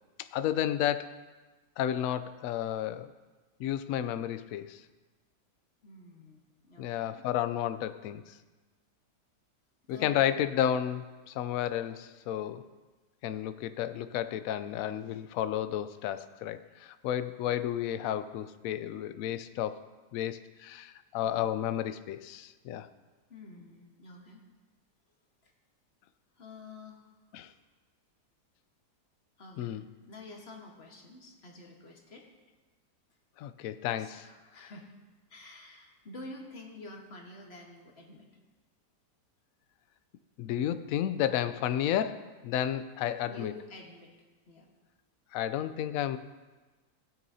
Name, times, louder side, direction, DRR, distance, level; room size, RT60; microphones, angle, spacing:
voice 1, 0.2-1.1 1.8-3.1 3.6-4.8 6.8-8.3 9.9-12.6 13.2-19.8 20.1-22.9 27.3-27.5 29.6-29.8 33.4-34.3 34.6-34.7 40.4-43.5 45.3-46.2, left 11 dB, 70° left, 12 dB, 0.9 m, -32 dB
voice 2, 5.8-7.2 9.9-10.3 21.2-21.4 23.3-24.4 25.4-25.5 26.4-27.1 29.4-29.7 30.1-32.3 34.0-34.9 35.3-38.3 43.3-44.1 44.5-44.7, left 2 dB, 40° left, 1 dB, 1.5 m, -48 dB
15.5 x 9.3 x 2.7 m, 1.2 s
omnidirectional pair, 1.8 m